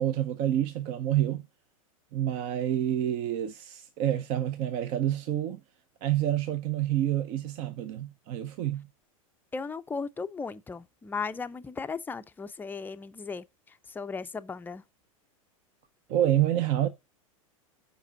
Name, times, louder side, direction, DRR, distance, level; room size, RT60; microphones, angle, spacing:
voice 1, 0.0-1.4 2.1-5.6 6.0-8.9 16.1-16.9, right 12 dB, 45° right, 0.8 m, -28 dB
voice 2, 9.5-14.8, left 4 dB, 10° left, 0.5 m, -36 dB
7.2 x 5.2 x 5.3 m
hypercardioid pair, 100°, 18 cm